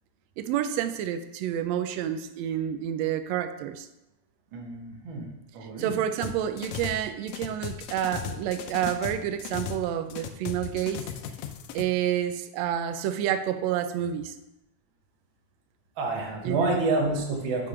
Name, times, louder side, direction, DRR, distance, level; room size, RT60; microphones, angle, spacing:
voice 1, 0.4-3.9 5.8-11.0 11.7-14.4 16.4-16.8, right 10 dB, 85° right, 9 dB, 1.5 m, -29 dB
voice 2, 4.5-5.3 5.5-5.9 16.0-17.7, right 2 dB, 50° right, 0 dB, 1.7 m, -28 dB
sound 1, 6.2-7.0 7.3-9.9 10.1-11.8, left 9 dB, 75° left, 1.7 m, -36 dB
8.1 x 3.5 x 5.8 m, 0.90 s
omnidirectional pair, 3.5 m